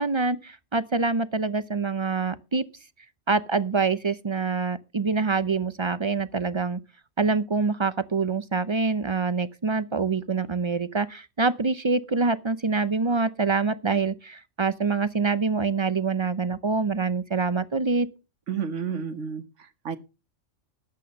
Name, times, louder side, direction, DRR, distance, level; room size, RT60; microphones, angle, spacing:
voice 1, 0.0-2.6 3.3-6.8 7.2-18.1, right 4 dB, 35° right, 0.4 m, -25 dB
voice 2, 18.5-20.0, right 7 dB, 75° right, 1.5 m, -31 dB
12.5 x 8.5 x 5.3 m
omnidirectional pair, 1.3 m